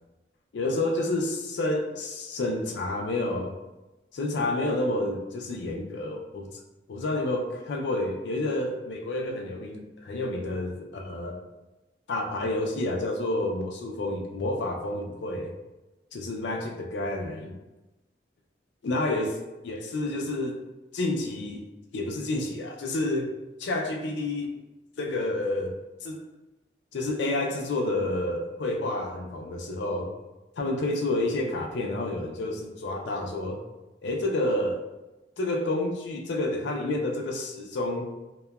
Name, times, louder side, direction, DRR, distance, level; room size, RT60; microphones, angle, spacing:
voice 1, 0.5-3.5 4.1-6.5 6.9-11.4 12.1-15.5 16.1-17.5 18.8-20.6 20.9-21.6 21.9-23.3 23.6-24.5 25.0-25.8 26.0-26.2 26.9-30.1 30.6-33.6 34.0-34.8 35.4-38.2, left 2 dB, 75° left, 2 dB, 0.4 m, -29 dB
2.8 x 2.1 x 2.3 m, 1.0 s
head